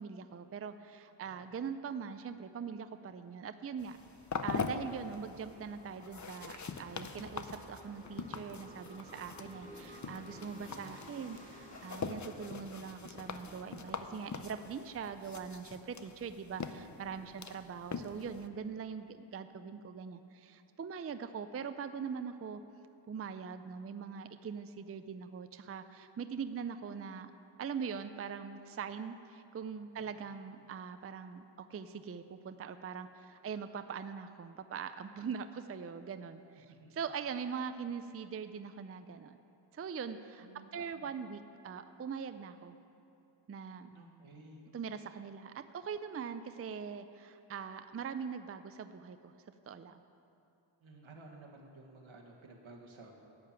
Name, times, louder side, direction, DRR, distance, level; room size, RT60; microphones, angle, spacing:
voice 1, 0.0-4.0 4.4-22.6 23.1-27.3 27.6-36.7 36.9-39.4 39.7-40.5 40.7-42.8 43.5-43.9 44.7-49.3 49.7-50.0, right 6 dB, 30° right, 10 dB, 0.4 m, -42 dB
sound 1, 3.0-17.3, equal, 15° left, 2.5 m, -56 dB
sound 2, 3.8-18.5, left 5 dB, 40° left, 0.6 m, -43 dB
voice 2, 40.4-41.1 43.9-44.6 50.8-53.1, right 2 dB, 80° right, 1 dB, 1.8 m, -54 dB
11.5 x 7.6 x 8.7 m, 2.8 s
wide cardioid pair, 115°, 47 cm